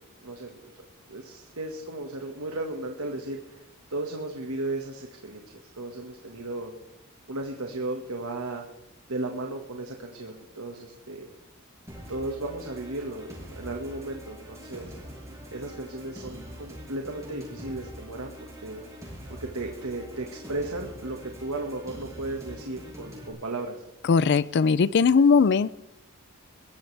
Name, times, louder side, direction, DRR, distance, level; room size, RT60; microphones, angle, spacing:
voice 1, 0.2-0.7 1.1-6.7 7.3-8.6 9.1-11.3 12.1-14.9 15.5-18.3 18.6-18.8 19.3-23.8, right 2 dB, 85° right, 2 dB, 1.8 m, -35 dB
sound 1, 11.9-23.3, equal, 15° right, 6.5 m, -44 dB
voice 2, 24.0-25.7, left 5 dB, 55° left, 18 dB, 0.4 m, -19 dB
22.0 x 15.0 x 3.4 m, 0.85 s
head